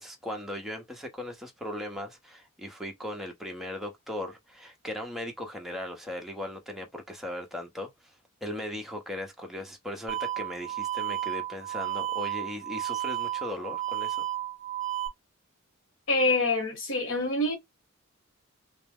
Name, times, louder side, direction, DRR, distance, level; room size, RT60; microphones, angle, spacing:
voice 1, 0.0-7.9 8.4-14.2, left 1 dB, ahead, 0.8 m, -38 dB
sound 1, 10.1-15.1, right 13 dB, 35° right, 0.8 m, -32 dB
voice 2, 16.1-17.5, left 2 dB, 70° left, 1.2 m, -26 dB
3.1 x 2.1 x 3.5 m
head